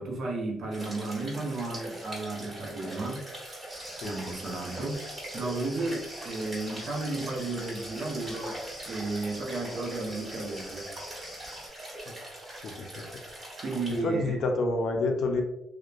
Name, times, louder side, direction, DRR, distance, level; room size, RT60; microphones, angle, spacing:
voice 1, 0.0-3.3 4.0-10.9 13.6-14.4, right 2 dB, 60° right, -1 dB, 0.7 m, -33 dB
sound 1, 0.7-14.0, right 1 dB, 35° right, 1.5 m, -42 dB
sound 2, 3.7-11.7, equal, 5° right, 0.9 m, -46 dB
voice 2, 12.6-13.1 14.0-15.4, left 3 dB, 65° left, 3 dB, 0.5 m, -28 dB
2.9 x 2.1 x 2.4 m, 0.86 s
cardioid pair, 90°, 0 cm